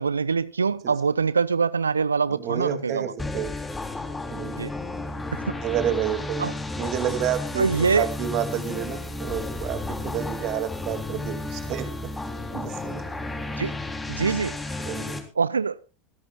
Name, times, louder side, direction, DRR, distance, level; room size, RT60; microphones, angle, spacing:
voice 1, 0.0-3.1 4.6-4.7 5.3-5.5 6.4-6.5 7.6-8.1 13.6-13.7 14.1-14.8 15.4-15.8, right 5 dB, 85° right, 0.6 m, -24 dB
voice 2, 2.3-3.5 4.3-4.6 5.6-6.5 6.8-12.1 12.5-13.1 14.8-15.2, right 10 dB, 50° right, 2.5 m, -30 dB
sound 1, 3.2-15.2, left 2 dB, 15° left, 3.5 m, -33 dB
27.0 x 11.0 x 2.4 m
figure-of-eight pair, 80°, 0 cm